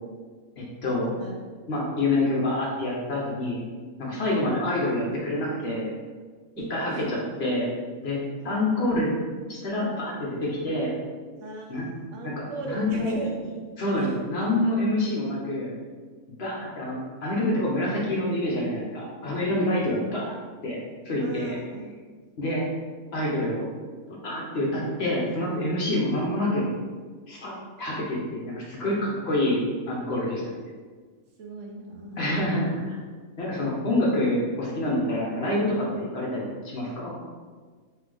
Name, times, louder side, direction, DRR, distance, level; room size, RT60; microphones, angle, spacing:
voice 1, 0.6-1.1 1.7-3.6 4.0-5.9 6.7-7.7 8.0-9.1 9.5-10.9 11.7-11.9 12.2-12.3 12.6-13.1 13.8-15.7 16.4-20.3 20.6-20.8 21.0-21.6 22.4-22.6 23.1-23.7 24.1-26.6 27.3-27.5 27.8-30.6 32.2-33.0 33.4-37.2, left 1 dB, 50° left, -4 dB, 1.0 m, -27 dB
voice 2, 4.1-4.5 6.6-7.1 8.4-8.5 11.3-11.7 12.1-13.5 13.8-14.1 21.2-21.9 31.4-32.2, right 2 dB, 65° right, 0 dB, 0.9 m, -37 dB
3.6 x 3.3 x 3.4 m, 1.5 s
omnidirectional pair, 1.5 m